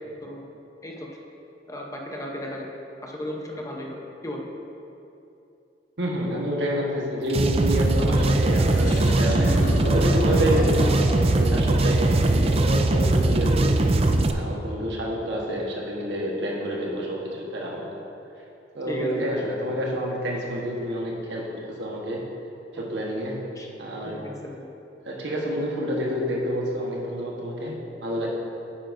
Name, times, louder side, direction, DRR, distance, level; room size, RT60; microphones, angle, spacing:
voice 1, 1.7-2.7 3.0-4.5 18.9-19.3 23.6-23.7 24.1-24.7, left 1 dB, 20° left, 0 dB, 0.8 m, -35 dB
voice 2, 6.0-11.0 11.3-13.7 14.3-18.0 18.7-22.3 22.7-23.5 23.8-24.2 25.0-28.3, equal, 80° right, -2 dB, 1.3 m, -28 dB
sound 1, 7.3-14.3, right 2 dB, 35° right, 0.4 m, -21 dB
sound 2, 8.7-13.2, left 1 dB, 45° left, 1.0 m, -33 dB
9.7 x 8.6 x 2.6 m, 2.7 s
head